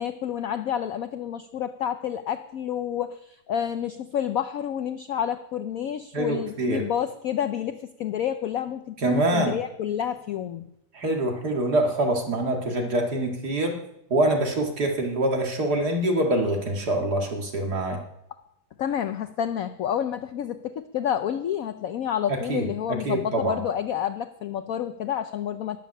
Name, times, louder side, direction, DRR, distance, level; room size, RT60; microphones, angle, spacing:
voice 1, 0.0-9.0 9.3-10.6 18.8-25.8, left 9 dB, 75° left, 10 dB, 0.8 m, -29 dB
voice 2, 6.1-6.9 9.0-9.6 10.9-13.8 14.1-18.0 22.5-23.6, right 1 dB, 55° right, 2 dB, 2.4 m, -25 dB
13.0 x 7.2 x 9.9 m, 0.80 s
omnidirectional pair, 2.1 m